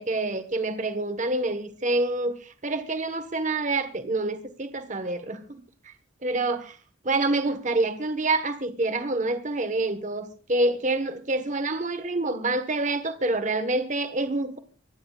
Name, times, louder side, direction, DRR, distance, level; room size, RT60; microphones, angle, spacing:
voice 1, 0.0-5.9 6.2-6.8 7.0-14.6, right 2 dB, 40° right, 1.2 m, -27 dB
25.5 x 15.5 x 2.4 m
head